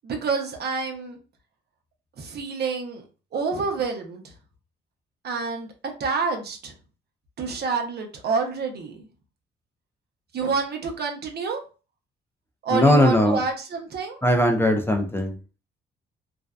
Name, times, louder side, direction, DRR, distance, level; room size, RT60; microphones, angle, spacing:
voice 1, 0.0-1.2 2.2-3.0 3.3-4.3 5.2-5.7 6.0-6.7 7.4-9.1 10.3-11.6 12.6-14.2, right 4 dB, 55° right, 3 dB, 0.7 m, -28 dB
voice 2, 12.7-13.4 14.2-15.3, left 1 dB, 10° left, 3 dB, 0.4 m, -19 dB
2.5 x 2.1 x 2.3 m, 0.34 s
cardioid pair, 90°, 20 cm